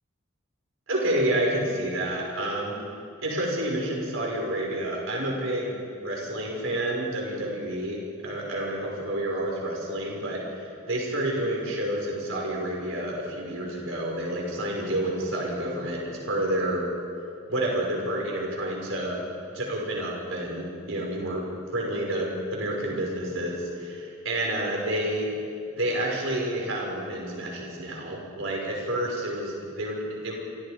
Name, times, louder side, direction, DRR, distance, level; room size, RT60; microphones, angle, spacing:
voice 1, 0.9-2.8 3.2-16.9 17.5-19.2 19.6-21.4 21.7-25.3 25.7-30.3, right 1 dB, 70° right, -1 dB, 5.5 m, -29 dB
28.0 x 27.5 x 5.1 m, 2.5 s
head